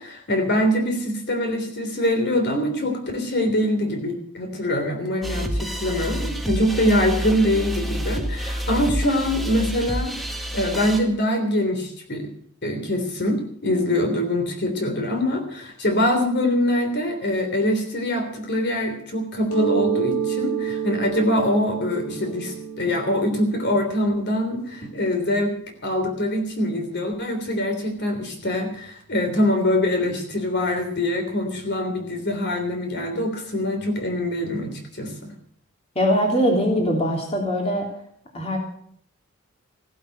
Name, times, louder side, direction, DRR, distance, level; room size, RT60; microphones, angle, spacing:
voice 1, 0.0-12.3 12.6-25.5 25.8-35.3, left 1 dB, 50° left, 5 dB, 3.4 m, -24 dB
sound 1, 5.2-11.0, equal, ahead, 1.7 m, -28 dB
Mallet percussion, 19.5-25.0, right 7 dB, 75° left, 5.3 m, -29 dB
voice 2, 35.9-37.9 38.3-38.6, equal, 25° left, 1 dB, 3.3 m, -21 dB
16.5 x 11.5 x 6.7 m, 0.62 s
head